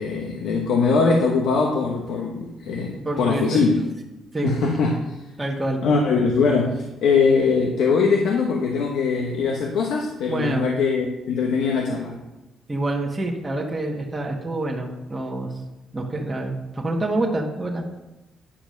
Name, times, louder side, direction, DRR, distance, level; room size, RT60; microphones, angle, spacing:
voice 1, 0.0-3.8 4.4-5.2 5.8-12.2, left 4 dB, 80° left, 0 dB, 1.2 m, -21 dB
voice 2, 3.0-3.6 4.3-4.5 5.4-5.8 10.3-10.7 12.7-15.5 15.9-17.8, right 2 dB, 15° right, -2 dB, 1.6 m, -26 dB
10.0 x 5.0 x 6.4 m, 0.99 s
cardioid pair, 90°, 0 cm